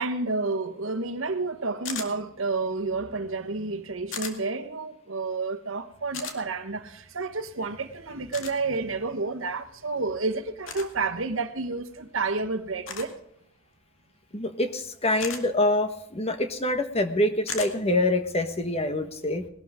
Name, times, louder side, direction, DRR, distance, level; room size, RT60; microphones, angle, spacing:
voice 1, 0.0-13.1, right 3 dB, 80° right, 1.2 m, -30 dB
sound 1, 1.8-2.1 4.1-4.3 6.1-6.4 8.3-8.5 10.6-10.9 12.9-13.1 15.2-15.4 17.5-17.7, left 6 dB, 75° left, 2.0 m, -35 dB
voice 2, 14.3-19.5, left 1 dB, 30° left, 1.3 m, -25 dB
20.0 x 12.5 x 3.6 m
head